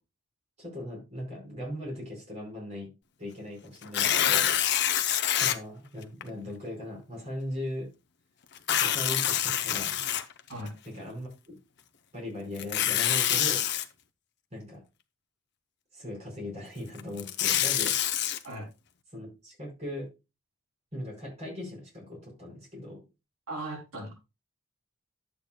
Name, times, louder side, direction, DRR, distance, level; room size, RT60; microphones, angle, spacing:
voice 1, 0.6-2.9 3.2-4.5 5.4-7.9 8.7-10.0 10.8-11.6 12.1-13.7 14.5-14.8 15.9-17.9 19.1-20.1 20.9-23.0, left 1 dB, 30° right, -1 dB, 5.1 m, -39 dB
Tearing, 3.8-5.6 6.2-6.3 8.6-10.7 12.6-13.8 17.0-18.4, left 10 dB, 50° left, 0.7 m, -26 dB
voice 2, 23.5-24.1, right 1 dB, 85° right, -1 dB, 3.4 m, -37 dB
11.5 x 8.2 x 2.3 m, 0.27 s
head